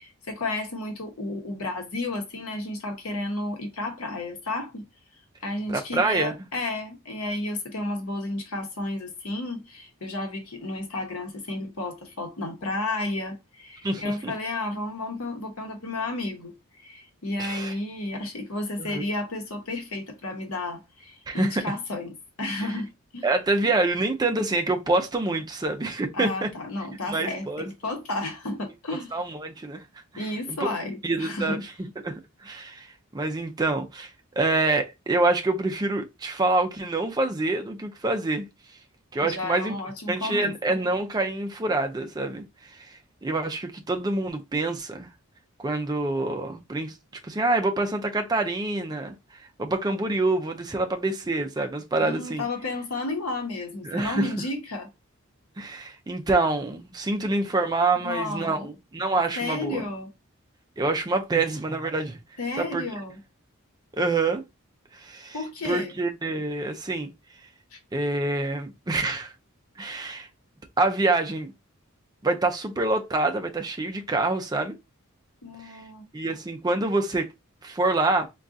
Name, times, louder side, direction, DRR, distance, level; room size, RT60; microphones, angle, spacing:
voice 1, 0.0-4.8 5.4-23.3 26.1-29.2 30.2-31.6 39.2-40.5 52.0-54.9 58.0-58.7 59.4-60.1 62.4-63.2 65.3-65.9 67.7-67.8 75.4-76.0, left 2 dB, 85° left, 0.9 m, -32 dB
voice 2, 5.7-6.3 13.8-14.3 17.4-17.7 18.8-19.0 21.3-21.6 22.5-22.7 23.2-26.5 27.1-27.7 29.1-29.8 30.1-30.7 31.0-31.7 32.0-32.9 33.1-34.1 34.4-38.5 39.1-39.7 40.1-42.4 42.7-42.9 43.2-45.1 45.6-46.9 47.2-49.1 49.6-52.4 53.8-54.3 55.6-59.8 60.8-62.2 62.6-62.8 63.9-64.4 64.9-65.4 65.6-67.1 67.9-69.3 69.8-70.3 70.8-71.5 72.2-74.8 75.6-75.8 76.1-77.3 77.6-78.3, right 2 dB, 20° right, 0.4 m, -26 dB
3.6 x 2.3 x 2.6 m
head